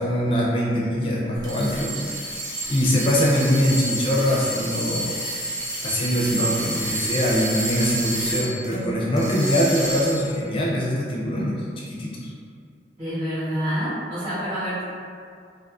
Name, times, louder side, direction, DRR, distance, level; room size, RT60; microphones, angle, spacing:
voice 1, 0.0-2.3 2.7-5.1 5.8-12.3, equal, 30° left, -4 dB, 0.4 m, -23 dB
sound 1, 1.4-8.8 9.2-10.3, right 1 dB, 25° right, 0.5 m, -29 dB
voice 2, 13.0-14.8, equal, 40° right, -13 dB, 0.9 m, -27 dB
2.4 x 2.4 x 2.3 m, 2.3 s
head